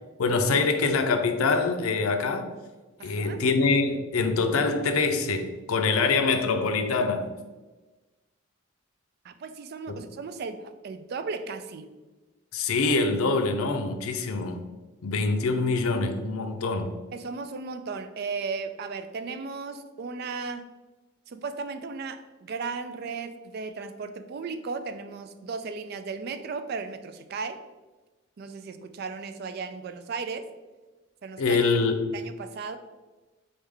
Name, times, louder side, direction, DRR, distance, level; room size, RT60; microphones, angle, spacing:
voice 1, 0.2-2.5 3.0-7.3 9.9-10.0 12.5-14.6 15.0-16.9 31.4-32.2, left 4 dB, 90° left, 0.5 m, -25 dB
voice 2, 3.0-3.4 9.2-11.9 17.1-20.7 21.3-27.6 28.4-30.5 31.2-31.6 32.1-32.8, right 4 dB, 50° right, 0.3 m, -35 dB
4.2 x 3.4 x 3.6 m
head